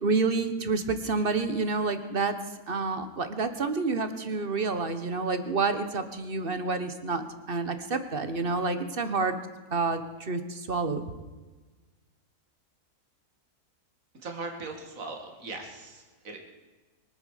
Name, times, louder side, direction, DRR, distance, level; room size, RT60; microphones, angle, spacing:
voice 1, 0.0-2.3 2.7-9.4 9.7-11.0, right 4 dB, 35° right, 10 dB, 1.4 m, -29 dB
voice 2, 14.1-16.4, right 3 dB, 55° right, 3 dB, 2.7 m, -39 dB
24.0 x 9.1 x 6.6 m, 1.3 s
omnidirectional pair, 1.7 m